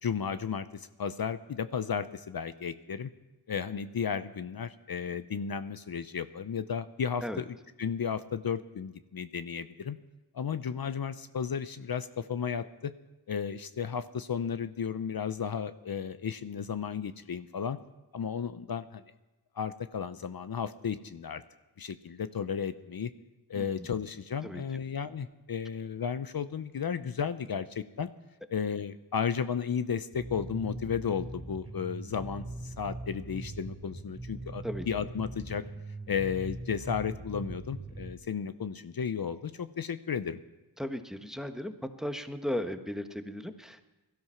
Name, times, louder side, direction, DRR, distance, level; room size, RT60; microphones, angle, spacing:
voice 1, 0.0-3.1 3.5-10.0 10.3-12.9 13.3-17.8 18.1-19.0 19.6-21.4 21.8-23.1 23.5-28.1 28.5-35.6 36.1-40.4, left 7 dB, 60° left, 12 dB, 0.7 m, -34 dB
voice 2, 23.5-23.9 24.4-24.6 34.6-34.9 40.8-41.7 42.0-43.9, equal, ahead, 8 dB, 1.4 m, -36 dB
sound 1, 30.1-38.1, right 2 dB, 30° right, 3.0 m, -41 dB
17.5 x 13.0 x 5.8 m, 1.1 s
cardioid pair, 40°, 40 cm